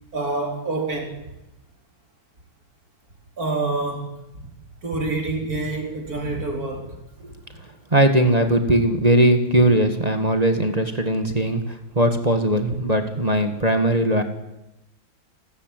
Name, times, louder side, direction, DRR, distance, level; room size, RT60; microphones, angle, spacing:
voice 1, 0.1-1.3 3.4-4.5 4.8-7.0, right 3 dB, 40° right, 2 dB, 4.5 m, -27 dB
voice 2, 7.9-11.6 11.9-14.2, right 1 dB, 20° right, 7 dB, 1.9 m, -19 dB
29.5 x 13.0 x 9.3 m, 0.93 s
omnidirectional pair, 2.3 m